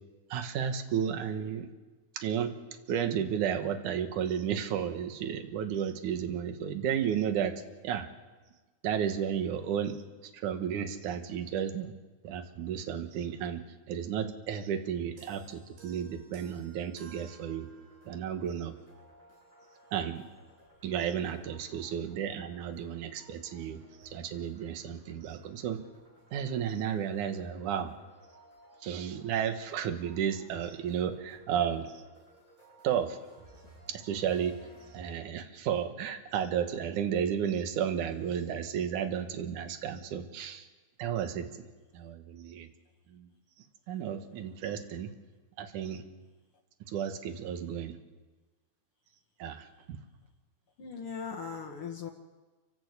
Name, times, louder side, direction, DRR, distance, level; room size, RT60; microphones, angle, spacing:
voice 1, 0.3-1.7 2.1-2.5 2.9-7.6 7.8-8.1 8.8-10.0 10.4-11.9 12.2-17.7 18.1-18.7 19.9-20.2 20.8-25.8 26.3-27.9 28.8-32.0 32.8-33.2 33.9-34.5 34.9-40.7 41.0-41.5 41.9-42.7 43.1-43.3 43.9-45.1 45.6-46.0 46.9-48.0 49.4-50.0, right 8 dB, 60° right, 7 dB, 2.7 m, -33 dB
sound 1, 15.2-18.4, right 4 dB, 80° right, 5.3 m, -56 dB
sound 2, 17.6-35.1, right 1 dB, 20° right, 7.9 m, -59 dB
voice 2, 50.8-52.1, left 6 dB, 70° left, 2 dB, 1.3 m, -39 dB
28.5 x 12.5 x 8.3 m, 1.2 s
omnidirectional pair, 4.6 m